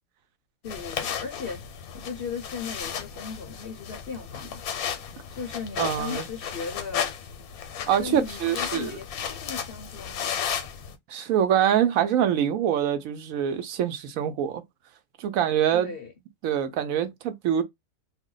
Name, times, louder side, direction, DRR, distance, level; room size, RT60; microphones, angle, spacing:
sound 1, 0.6-10.9, left 8 dB, 90° left, 1.1 m, -34 dB
voice 1, 0.6-1.6 1.9-4.6 5.3-7.1 8.0-10.4 15.7-16.1, left 6 dB, 60° left, 0.6 m, -37 dB
voice 2, 5.8-6.2 7.9-9.0 11.1-14.6 15.2-15.9 16.4-17.6, right 9 dB, 75° right, 1.0 m, -24 dB
2.6 x 2.1 x 3.7 m
omnidirectional pair, 1.5 m